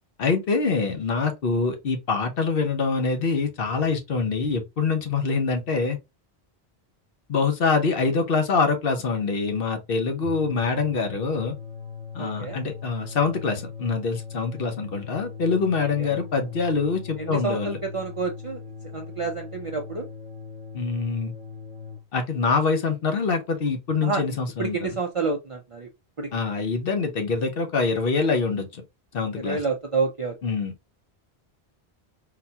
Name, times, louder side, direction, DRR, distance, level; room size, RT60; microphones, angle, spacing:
voice 1, 0.2-6.0 7.3-11.5 12.1-17.8 20.7-21.3 22.1-24.8 26.3-28.8 29.1-29.6 30.4-30.7, left 4 dB, 65° left, 0.9 m, -25 dB
sound 1, 10.1-22.0, left 5 dB, 5° left, 1.0 m, -39 dB
voice 2, 12.2-12.6 16.0-16.1 17.2-18.6 18.9-20.1 24.0-24.2 24.6-25.9 26.2-26.3 29.4-30.3, right 4 dB, 45° right, 0.4 m, -28 dB
3.9 x 2.2 x 2.7 m
omnidirectional pair, 1.1 m